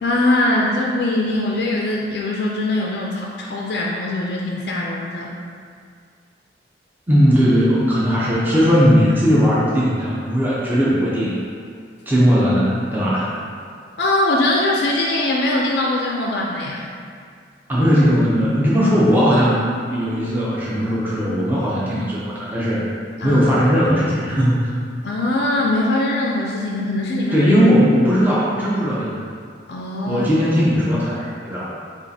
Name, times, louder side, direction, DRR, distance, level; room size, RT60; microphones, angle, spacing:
voice 1, 0.0-5.3 14.0-16.9 23.2-23.4 25.0-27.5 29.7-30.3, left 1 dB, 60° left, -2 dB, 0.4 m, -21 dB
voice 2, 7.1-11.4 12.1-13.3 17.7-19.6 19.9-22.8 23.2-24.7 27.3-29.1 30.1-31.8, equal, 10° right, -8 dB, 0.6 m, -18 dB
7.0 x 2.5 x 2.7 m, 2.1 s
head